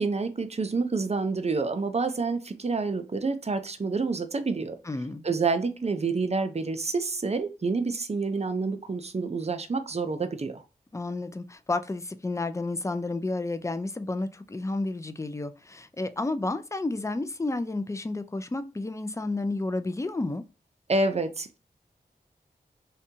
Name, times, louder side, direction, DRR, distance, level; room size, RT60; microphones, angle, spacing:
voice 1, 0.0-4.8 5.2-10.6 20.9-21.6, right 4 dB, 40° right, 0.5 m, -28 dB
voice 2, 4.8-5.2 10.9-20.4, left 2 dB, 20° left, 0.4 m, -31 dB
2.7 x 2.2 x 2.6 m
cardioid pair, 40°, 17 cm